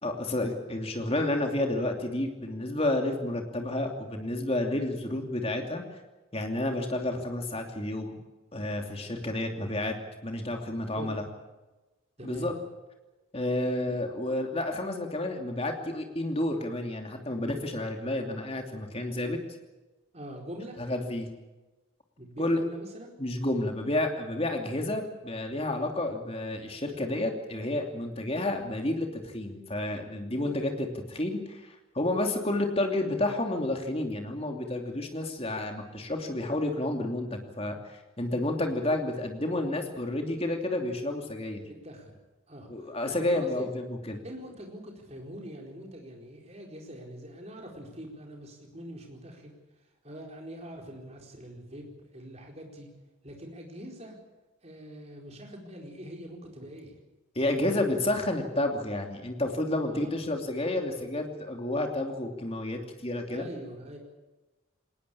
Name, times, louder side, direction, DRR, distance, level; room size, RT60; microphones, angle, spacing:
voice 1, 0.0-5.8 6.3-8.2 8.5-10.0 10.2-11.2 12.2-12.5 13.3-19.4 20.8-21.3 22.4-22.6 23.2-31.7 31.9-41.6 42.7-44.2 57.3-63.5, left 1 dB, 30° left, 4 dB, 2.8 m, -30 dB
voice 2, 12.2-12.5 20.1-20.8 22.2-23.1 41.7-42.2 42.5-43.7 44.2-49.5 50.0-52.9 53.2-54.2 54.6-57.0 59.9-60.2 60.9-61.0 63.3-64.0, equal, 30° right, 1 dB, 4.4 m, -43 dB
20.5 x 19.5 x 8.6 m, 1.1 s
head